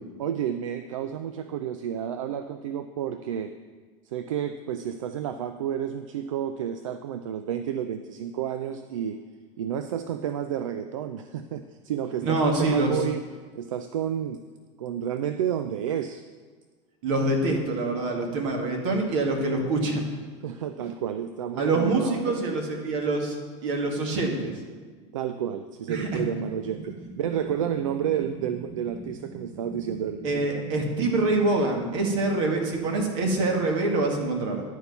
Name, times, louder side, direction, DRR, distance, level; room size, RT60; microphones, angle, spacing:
voice 1, 0.2-3.5 4.0-9.2 9.6-13.2 13.6-14.4 14.8-16.2 20.4-22.2 25.1-30.5, right 9 dB, 85° right, 10 dB, 0.4 m, -30 dB
voice 2, 12.2-12.9 17.0-20.0 21.5-23.4 23.6-24.5 25.9-26.2 30.2-34.6, right 2 dB, 70° right, 1 dB, 2.0 m, -25 dB
sound 1, 26.2-33.5, right 2 dB, 50° right, 1.5 m, -43 dB
11.0 x 4.5 x 6.9 m, 1.4 s
hypercardioid pair, 95°, 16 cm